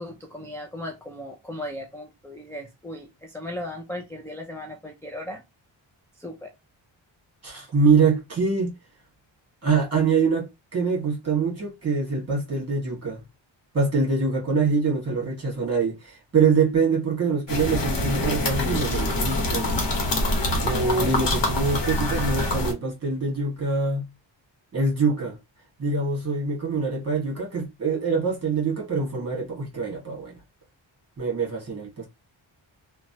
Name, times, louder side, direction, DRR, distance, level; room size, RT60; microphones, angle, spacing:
voice 1, 0.0-5.4 6.2-6.5, left 1 dB, 5° left, 0.3 m, -37 dB
voice 2, 7.4-8.7 9.6-13.2 13.7-19.8 20.6-24.1 24.7-25.4 25.8-30.3 31.2-32.1, right 4 dB, 30° right, 1.5 m, -24 dB
sound 1, 17.5-22.7, left 1 dB, 60° left, 0.9 m, -25 dB
3.0 x 2.2 x 2.8 m
wide cardioid pair, 150°, 47 cm